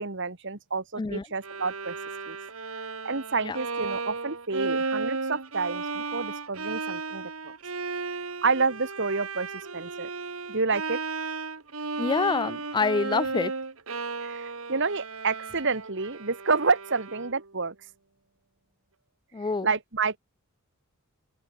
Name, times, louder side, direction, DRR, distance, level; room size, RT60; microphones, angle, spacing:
voice 1, 0.0-1.9 2.3-2.4 3.0-7.3 8.4-9.5 9.7-10.1 10.5-11.0 14.2-17.7 19.6-20.2, right 4 dB, 60° right, 2.1 m, -29 dB
Bowed string instrument, 1.4-17.5, right 4 dB, 85° right, 2.2 m, -34 dB
voice 2, 12.0-13.5 19.3-19.7, left 4 dB, 20° left, 0.4 m, -26 dB
open air
head